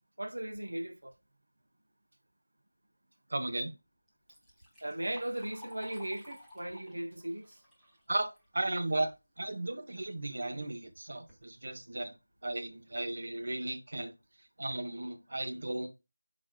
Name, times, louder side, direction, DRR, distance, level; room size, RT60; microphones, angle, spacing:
voice 1, 0.2-1.1 4.8-7.5, right 1 dB, 80° right, 0.6 m, -37 dB
voice 2, 3.3-3.7 8.1-12.1 12.4-14.1 14.6-15.9, right 2 dB, 60° right, 0.9 m, -35 dB
Liquid, 4.1-9.2 9.6-9.7 10.6-10.7 11.1-11.4 12.0-12.1 12.6-12.7 13.2-13.4, left 1 dB, ahead, 1.0 m, -55 dB
4.8 x 4.0 x 2.2 m
figure-of-eight pair, 170°, 0 cm